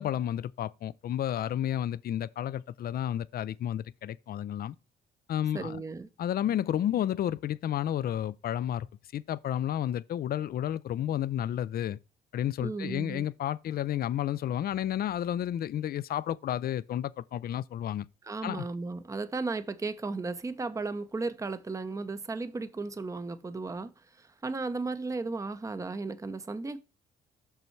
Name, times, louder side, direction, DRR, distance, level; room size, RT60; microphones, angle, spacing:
voice 1, 0.0-4.8 5.3-5.8 6.2-8.9 9.1-12.0 12.3-18.1 18.4-18.7, left 11 dB, 50° left, 0.4 m, -31 dB
voice 2, 5.5-6.1 12.6-13.3 18.2-23.9 24.2-26.8, right 3 dB, 15° right, 0.6 m, -35 dB
6.1 x 5.5 x 4.4 m
cardioid pair, 90°, 20 cm